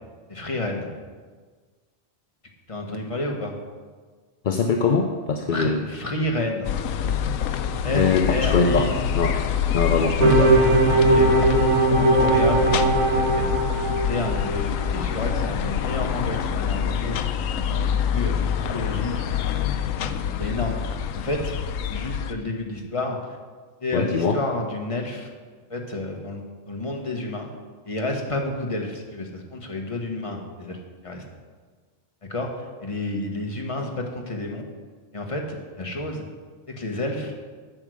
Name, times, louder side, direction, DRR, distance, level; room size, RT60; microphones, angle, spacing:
voice 1, 0.3-0.9 2.7-3.5 5.5-6.7 7.8-8.9 11.0-11.4 11.7-13.5 14.1-17.2 17.7-18.4 18.7-19.2 20.4-21.6 21.9-23.2 23.8-25.3 25.7-27.5 27.9-30.8 31.0-31.2 32.3-32.5 32.8-34.6 35.1-36.2 36.8-37.3, left 2 dB, 25° left, 1 dB, 1.3 m, -30 dB
voice 2, 4.4-5.8 7.9-9.4 9.7-10.5 23.9-24.4, left 4 dB, 50° left, 4 dB, 0.6 m, -22 dB
sound 1, 6.6-22.3, left 8 dB, 80° left, 1.0 m, -26 dB
sound 2, 10.2-14.8, right 2 dB, 85° right, 1.6 m, -19 dB
8.8 x 7.9 x 6.4 m, 1.5 s
omnidirectional pair, 1.4 m